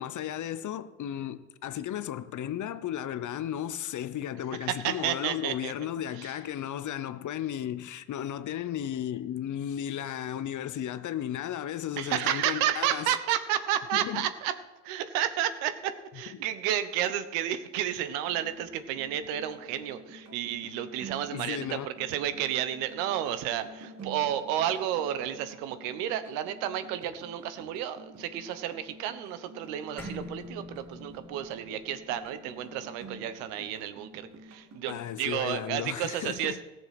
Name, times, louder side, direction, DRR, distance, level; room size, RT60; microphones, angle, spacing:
voice 1, 0.0-13.2 13.9-14.3 16.3-16.4 21.3-21.9 34.9-36.6, left 10 dB, 40° left, 0.8 m, -34 dB
voice 2, 4.7-5.7 6.2-6.3 12.0-14.5 14.8-36.6, right 11 dB, 70° right, 1.2 m, -31 dB
sound 1, 18.3-35.1, right 2 dB, 35° right, 1.9 m, -49 dB
sound 2, 30.0-34.6, left 2 dB, 5° left, 2.7 m, -47 dB
17.0 x 7.1 x 6.0 m
hypercardioid pair, 65°, 44 cm